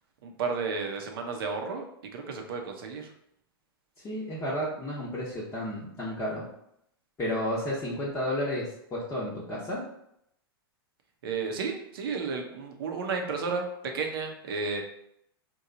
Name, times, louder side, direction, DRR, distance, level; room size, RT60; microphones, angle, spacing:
voice 1, 0.2-1.9 2.1-3.1 11.2-13.7 13.9-14.8, right 4 dB, 65° right, 3 dB, 0.8 m, -32 dB
voice 2, 4.0-6.5 7.2-9.8, left 1 dB, 20° left, -7 dB, 0.9 m, -32 dB
3.0 x 2.3 x 3.8 m, 0.74 s
hypercardioid pair, 115°, 13 cm